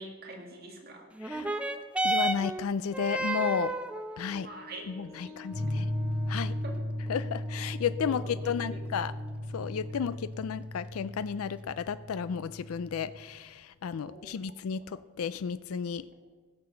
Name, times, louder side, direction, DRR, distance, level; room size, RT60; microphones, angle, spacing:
voice 1, 0.0-1.0 1.3-1.6 4.4-5.4 6.6-6.7 8.0-8.3 8.7-8.8 14.0-14.3, right 2 dB, 45° right, 1 dB, 2.1 m, -45 dB
sound 1, 1.1-10.1 11.0-11.1, right 1 dB, 5° right, 0.5 m, -35 dB
voice 2, 1.2-1.5 2.0-3.7 4.2-4.5 4.9-5.9 6.3-6.5 7.1-9.1 9.5-16.1, left 7 dB, 90° left, 15 dB, 0.4 m, -33 dB
sound 2, 5.5-13.2, left 1 dB, 70° right, 4.0 m, -36 dB
16.0 x 6.7 x 6.9 m, 1.4 s
head